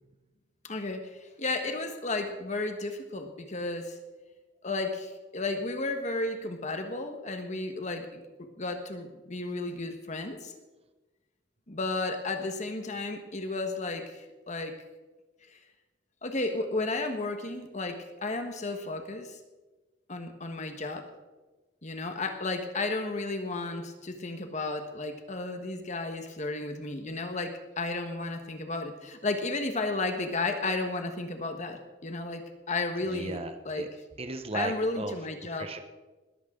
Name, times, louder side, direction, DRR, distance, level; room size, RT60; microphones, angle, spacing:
voice 1, 0.6-4.0 4.6-10.5 11.7-14.8 15.5-15.6 16.2-19.4 20.1-21.1 21.8-33.4 33.6-33.9 34.5-35.7, left 2 dB, 40° left, 6 dB, 1.4 m, -33 dB
voice 2, 33.1-33.9 34.2-35.2 35.6-35.8, right 2 dB, 30° right, 8 dB, 1.0 m, -35 dB
20.0 x 14.5 x 3.9 m, 1.2 s
head